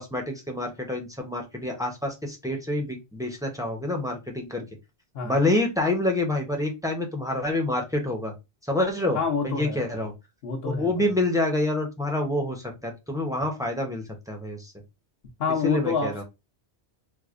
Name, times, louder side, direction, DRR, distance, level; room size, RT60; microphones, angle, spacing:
voice 1, 0.0-4.6 5.2-8.3 8.7-9.2 9.4-10.1 10.6-14.7 15.6-16.2, left 1 dB, 5° right, 0.5 m, -27 dB
voice 2, 9.1-10.1 10.4-11.1 15.4-16.2, left 5 dB, 60° left, 1.0 m, -28 dB
4.6 x 2.2 x 2.5 m
omnidirectional pair, 1.2 m